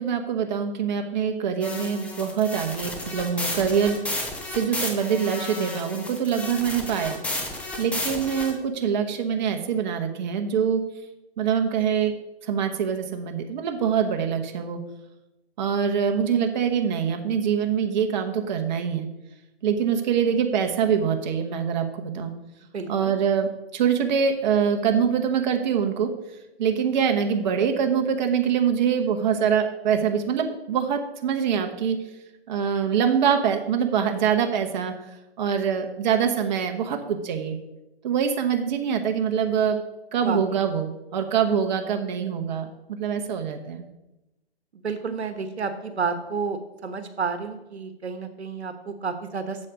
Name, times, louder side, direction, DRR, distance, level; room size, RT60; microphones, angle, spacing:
voice 1, 0.0-4.0 4.5-7.2 7.8-10.8 11.4-12.1 12.4-14.8 15.6-19.1 19.6-22.3 22.9-26.1 26.6-32.0 32.5-34.9 35.4-37.6 38.0-39.8 40.1-42.7 43.0-43.8, right 7 dB, 45° right, 5 dB, 1.1 m, -24 dB
sound 1, 1.6-8.5, left 2 dB, 5° left, 0.9 m, -32 dB
voice 2, 22.7-23.1 40.2-40.4 44.7-49.7, right 5 dB, 85° right, 9 dB, 1.2 m, -30 dB
7.7 x 7.6 x 5.0 m, 0.96 s
hypercardioid pair, 135°, 32 cm